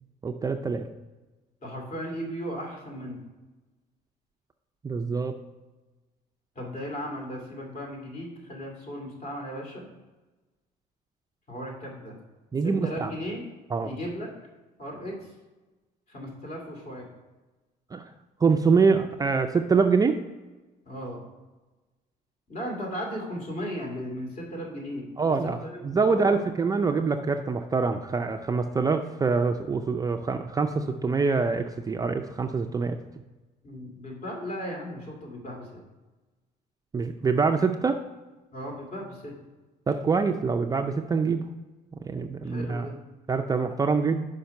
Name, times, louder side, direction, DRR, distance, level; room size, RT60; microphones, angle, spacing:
voice 1, 0.2-0.9 4.8-5.4 12.5-13.1 13.7-13.9 17.9-18.0 18.4-20.2 25.2-33.0 36.9-38.0 39.9-41.4 41.9-42.9 43.3-44.2, right 4 dB, 20° right, 5 dB, 0.4 m, -25 dB
voice 2, 1.6-3.2 6.6-9.9 11.5-12.2 12.6-13.4 13.8-14.3 14.8-15.2 16.1-17.1 20.9-21.2 22.5-25.1 25.6-25.8 26.1-26.4 33.6-35.8 38.5-39.3 42.4-42.9, equal, 40° left, 0 dB, 2.4 m, -36 dB
5.7 x 5.1 x 5.3 m, 1.2 s
cardioid pair, 110°, 17 cm